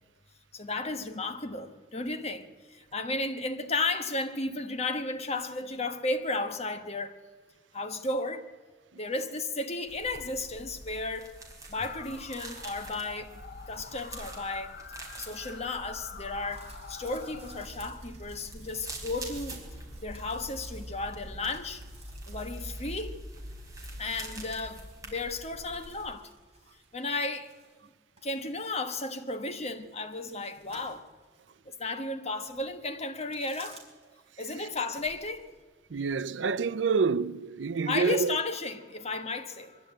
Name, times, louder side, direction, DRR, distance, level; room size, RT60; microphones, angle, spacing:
voice 1, 0.5-7.2 7.7-8.5 8.9-11.3 11.7-14.7 15.2-19.6 20.0-21.8 22.3-23.2 24.0-26.3 26.9-27.5 27.8-27.9 28.2-31.1 31.6-33.8 34.4-35.5 37.8-39.8, left 3 dB, 35° left, 1.3 m, -34 dB
sound 1, 9.9-26.1, right 1 dB, 20° right, 4.7 m, -44 dB
sound 2, 11.7-17.7, left 5 dB, 55° left, 1.4 m, -47 dB
sound 3, 16.5-27.9 28.2-31.4 31.9-32.0 33.2-34.1 34.3-35.6, right 4 dB, 35° right, 4.4 m, -56 dB
voice 2, 35.9-38.4, right 5 dB, 85° right, 0.5 m, -27 dB
23.0 x 13.5 x 8.9 m
head